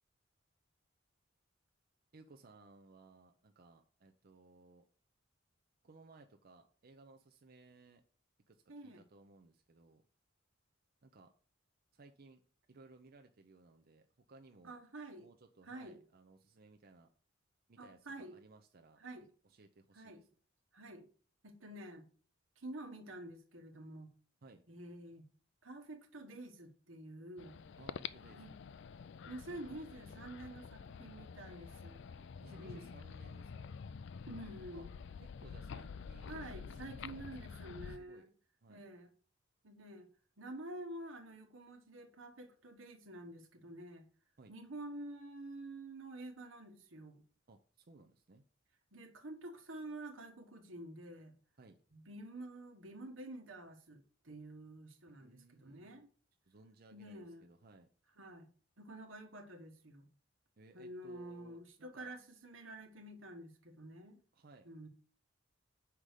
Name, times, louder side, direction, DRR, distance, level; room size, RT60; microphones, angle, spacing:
voice 1, 2.1-4.8 5.8-8.0 8.5-10.0 11.0-11.3 11.9-12.4 12.7-14.8 15.2-17.1 17.7-19.0 19.4-20.3 24.4-24.6 27.8-28.6 32.4-33.7 34.7-34.8 35.2-38.3 38.6-38.8 44.4-44.5 47.5-48.4 51.6-51.8 55.1-56.0 56.4-57.9 60.6-62.2 64.3-64.7, right 3 dB, 50° right, 0.6 m, -60 dB
voice 2, 8.7-9.0 14.6-15.3 15.6-16.0 17.8-18.3 19.0-19.3 19.9-20.2 20.7-21.1 21.4-22.1 22.6-24.1 24.7-25.3 25.6-27.6 28.4-28.5 29.3-32.0 32.6-32.9 34.3-34.9 36.3-38.3 38.7-39.1 39.6-40.1 40.4-44.0 44.5-47.2 48.9-51.3 51.9-56.1 56.9-57.5 58.2-58.5 58.8-60.1 60.7-64.2 64.6-64.9, right 1 dB, 85° right, 1.4 m, -49 dB
sound 1, 27.4-38.0, left 6 dB, 65° left, 0.4 m, -48 dB
5.8 x 4.9 x 6.6 m
head